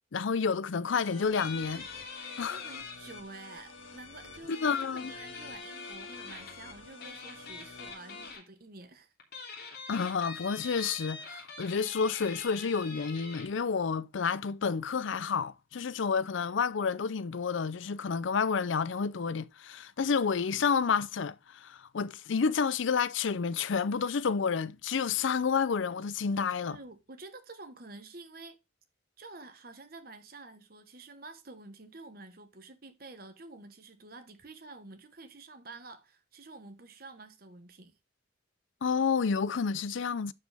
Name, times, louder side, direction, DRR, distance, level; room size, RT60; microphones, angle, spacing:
voice 1, 0.1-1.9 2.4-2.6 4.5-5.1 9.9-26.8 38.8-40.3, left 5 dB, 75° left, 0.5 m, -30 dB
sound 1, 0.9-8.3, left 4 dB, 90° left, 1.5 m, -49 dB
sound 2, 1.3-2.9 4.5-6.6 7.0-8.4 9.2-13.5, left 4 dB, 50° left, 3.1 m, -44 dB
voice 2, 2.5-4.5 4.9-9.1 26.6-28.6 29.2-37.9, right 2 dB, 45° right, 1.1 m, -49 dB
11.5 x 5.2 x 3.4 m
head